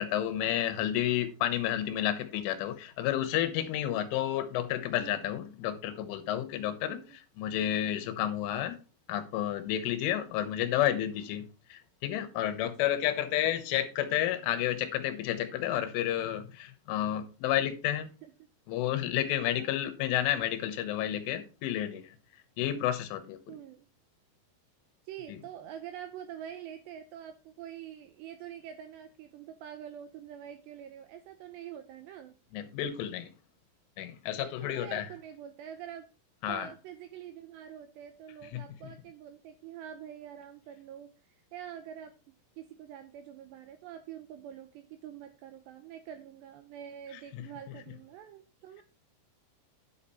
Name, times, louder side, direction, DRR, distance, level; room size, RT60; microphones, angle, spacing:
voice 1, 0.0-7.0 7.4-8.8 9.1-11.4 11.7-18.1 18.7-22.0 22.6-23.5 25.3-25.4 32.5-33.3 34.0-35.1 36.4-36.7 38.5-38.6, left 12 dB, 80° left, 3.4 m, -31 dB
voice 2, 5.0-5.3 6.8-7.2 12.6-13.1 18.2-18.3 19.4-19.7 23.5-23.9 25.1-32.4 34.4-36.1 36.5-41.1 41.5-42.2 42.6-48.8, right 10 dB, 85° right, 2.5 m, -46 dB
10.0 x 6.5 x 4.1 m
omnidirectional pair, 5.7 m